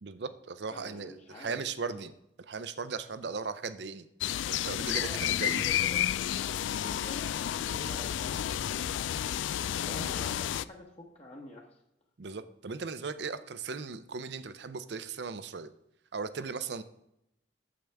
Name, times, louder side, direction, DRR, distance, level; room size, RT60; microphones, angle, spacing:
voice 1, 0.0-2.1 2.5-4.1 4.5-5.7 10.0-10.1 12.2-15.7 16.1-16.8, right 5 dB, 65° right, 12 dB, 0.6 m, -37 dB
voice 2, 0.7-2.0 4.8-6.0 6.8-8.9 9.8-11.8, left 1 dB, 35° left, 0 dB, 1.1 m, -47 dB
sound 1, 4.2-10.6, left 11 dB, 85° left, 0.3 m, -31 dB
8.6 x 7.6 x 3.4 m, 0.81 s
head